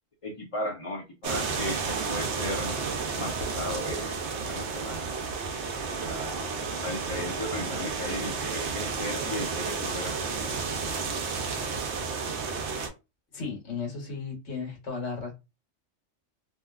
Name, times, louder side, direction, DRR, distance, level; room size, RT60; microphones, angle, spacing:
voice 1, 0.2-2.8 3.1-5.2 6.0-10.6, left 1 dB, 40° left, 0.5 m, -36 dB
sound 1, 1.2-12.9, right 5 dB, 70° right, 0.9 m, -32 dB
voice 2, 13.3-15.3, left 5 dB, 65° left, 1.3 m, -35 dB
2.7 x 2.3 x 2.3 m
omnidirectional pair, 1.2 m